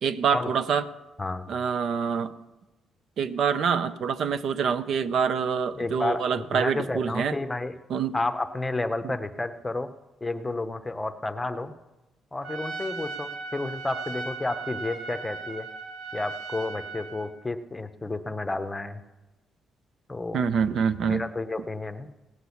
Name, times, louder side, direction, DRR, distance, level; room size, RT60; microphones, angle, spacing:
voice 1, 0.0-0.8 1.5-2.3 3.2-7.3 7.9-8.1 9.0-9.1 20.3-21.3, right 6 dB, 60° right, 13 dB, 0.6 m, -26 dB
voice 2, 1.2-1.5 5.8-7.7 8.1-9.9 10.2-11.7 12.3-15.7 16.1-19.0 20.1-20.5 21.0-22.1, left 2 dB, 10° left, 9 dB, 0.8 m, -31 dB
Trumpet, 12.4-17.3, right 4 dB, 75° right, 1.3 m, -37 dB
17.5 x 6.1 x 8.4 m, 1.1 s
cardioid pair, 155°, 0 cm